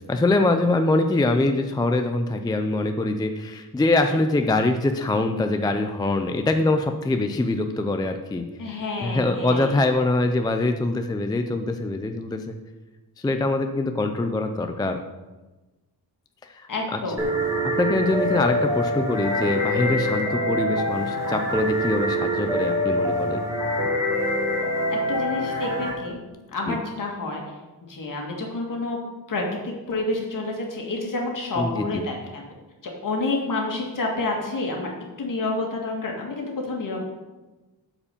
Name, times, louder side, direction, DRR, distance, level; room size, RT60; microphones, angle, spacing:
voice 1, 0.1-8.4 9.0-12.6 13.2-15.0 16.4-17.0 17.6-23.4 26.7-26.8 31.6-32.0, left 2 dB, 10° left, 6 dB, 0.3 m, -24 dB
voice 2, 3.8-4.2 8.6-9.8 16.7-17.4 24.9-26.2 26.5-27.5 27.8-29.0 29.3-32.4 32.8-34.9 35.2-37.0, left 2 dB, 50° left, 0 dB, 2.0 m, -29 dB
sound 1, 17.2-25.9, equal, 10° right, 1.8 m, -25 dB
8.7 x 4.9 x 6.8 m, 1.2 s
wide cardioid pair, 165°, 40 cm